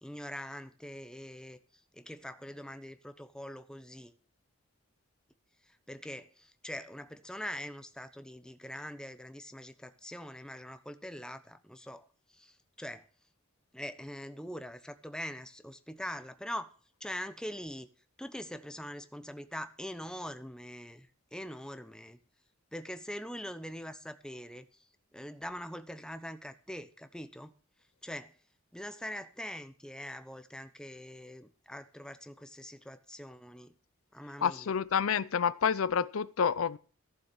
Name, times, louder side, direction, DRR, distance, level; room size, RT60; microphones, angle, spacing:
voice 1, 0.0-1.6 1.9-4.1 5.6-12.1 12.3-13.0 13.7-16.7 17.0-17.9 18.2-22.2 22.7-24.8 25.1-27.5 28.0-28.3 28.7-33.7 34.1-34.7, equal, 5° left, 0.9 m, -43 dB
voice 2, 34.4-36.8, left 7 dB, 75° left, 0.5 m, -29 dB
14.5 x 7.1 x 7.1 m
head